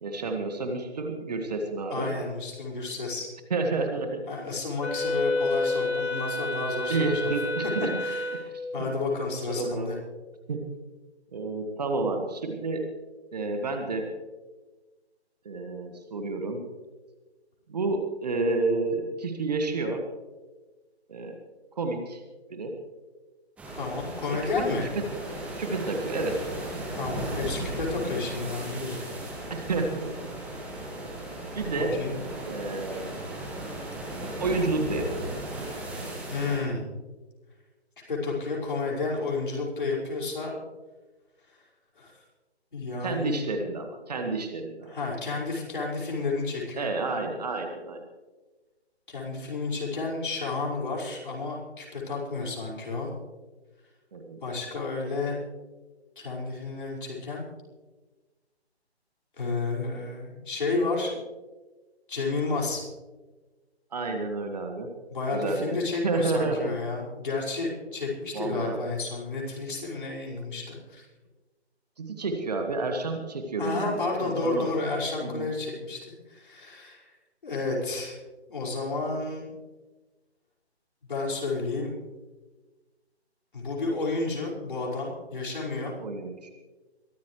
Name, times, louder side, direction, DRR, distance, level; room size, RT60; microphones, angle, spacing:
voice 1, 0.0-2.1 3.5-4.3 6.9-7.9 8.5-8.9 9.5-9.9 10.5-10.7 11.3-12.9 13.3-14.1 15.5-16.6 17.7-20.0 21.1-21.4 21.8-22.2 22.5-22.8 24.3-24.7 25.0-25.1 25.6-26.4 29.5-30.1 31.6-32.0 32.5-33.1 34.4-35.3 43.0-45.0 46.8-48.0 54.1-54.4 63.9-64.9 65.3-66.7 68.3-68.8 72.0-74.7 75.2-75.5 86.0-86.5, right 3 dB, 40° right, 4 dB, 1.7 m, -30 dB
voice 2, 1.9-3.3 4.3-7.3 8.0-10.0 23.8-24.9 27.0-29.5 31.7-32.1 36.3-36.9 38.1-40.6 42.0-42.1 42.7-43.4 44.9-46.9 49.1-53.1 54.4-55.4 56.2-57.5 59.4-61.3 62.1-62.8 65.1-71.1 73.6-77.0 77.4-78.2 78.5-79.5 81.1-81.9 83.5-86.0, left 3 dB, 50° left, -3 dB, 5.3 m, -31 dB
Wind instrument woodwind instrument, 4.8-8.6, left 2 dB, 75° left, 1.8 m, -29 dB
sound 1, 23.6-36.6, right 1 dB, 5° right, 1.9 m, -36 dB
23.0 x 13.5 x 3.2 m, 1.2 s
figure-of-eight pair, 150°, 33 cm